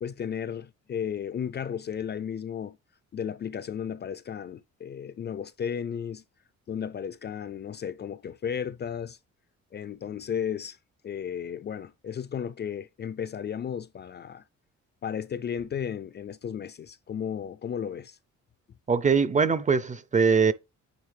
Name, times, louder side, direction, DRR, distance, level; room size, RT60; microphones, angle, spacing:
voice 1, 0.0-2.8 3.1-6.2 6.7-9.2 9.7-10.8 11.0-14.4 15.0-18.2, left 8 dB, 35° left, 0.4 m, -34 dB
voice 2, 18.9-20.5, right 5 dB, 25° right, 0.5 m, -22 dB
9.1 x 3.3 x 3.3 m
cardioid pair, 90°, 30 cm